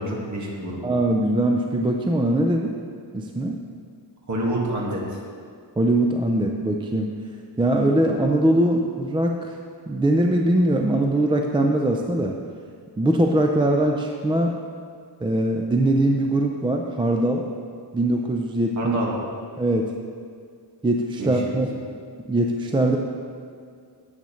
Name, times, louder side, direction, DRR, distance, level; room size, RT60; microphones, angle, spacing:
voice 1, 0.0-0.8 4.3-5.2 18.8-19.1 21.2-21.6, right 1 dB, 40° right, -3 dB, 1.8 m, -27 dB
voice 2, 0.8-2.8 3.1-3.6 5.8-7.1 7.6-9.5 9.9-12.3 13.0-14.6 15.2-17.4 17.9-19.0 19.6-19.9 20.8-21.7 22.3-23.0, right 1 dB, 10° right, 2 dB, 0.4 m, -21 dB
10.5 x 8.0 x 3.1 m, 2.2 s
wide cardioid pair, 145°, 43 cm